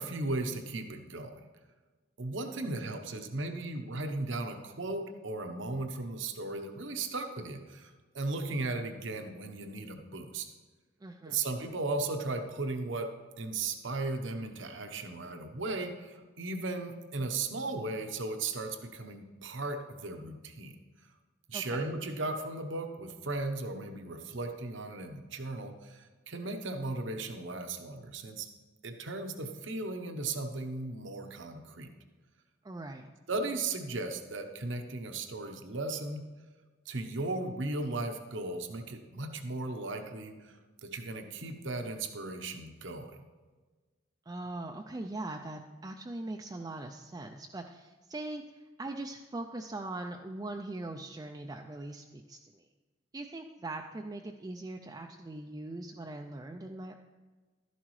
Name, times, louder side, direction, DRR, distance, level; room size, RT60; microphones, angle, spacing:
voice 1, 0.0-1.4 2.2-10.5 11.3-20.7 21.5-28.5 28.8-31.9 33.3-36.2 36.9-40.5 40.8-43.2, right 2 dB, 70° right, 6 dB, 0.9 m, -36 dB
voice 2, 11.0-11.5 21.5-21.9 32.6-33.1 44.3-52.6 53.1-56.9, right 2 dB, 20° right, 3 dB, 0.4 m, -41 dB
12.5 x 11.0 x 3.2 m, 1.3 s
head